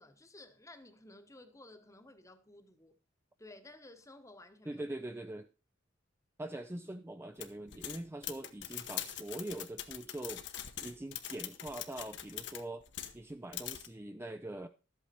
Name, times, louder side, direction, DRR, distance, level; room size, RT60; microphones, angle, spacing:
voice 1, 0.0-3.0 3.4-4.8, left 2 dB, 15° left, 1.0 m, -55 dB
voice 2, 4.7-5.5 6.4-12.8 13.1-14.7, right 1 dB, 10° right, 0.4 m, -43 dB
sound 1, 7.4-13.2 13.5-13.9, left 11 dB, 65° left, 1.0 m, -43 dB
12.5 x 8.3 x 4.3 m
head